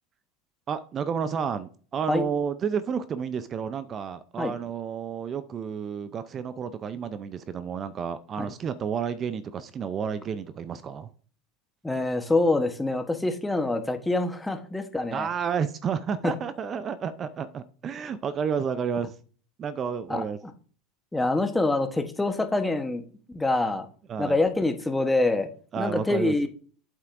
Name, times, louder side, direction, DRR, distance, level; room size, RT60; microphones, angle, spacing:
voice 1, 0.7-11.1 15.1-19.1 19.6-20.4 24.1-24.4 25.7-26.5, right 7 dB, 35° right, 13 dB, 0.5 m, -31 dB
voice 2, 11.8-15.3 16.2-16.3 20.1-20.5 21.1-23.0 23.3-23.9 24.2-25.5 25.8-26.5, left 2 dB, 10° left, 7 dB, 1.1 m, -25 dB
8.4 x 7.2 x 2.6 m, 0.43 s
hypercardioid pair, 90°, 0 cm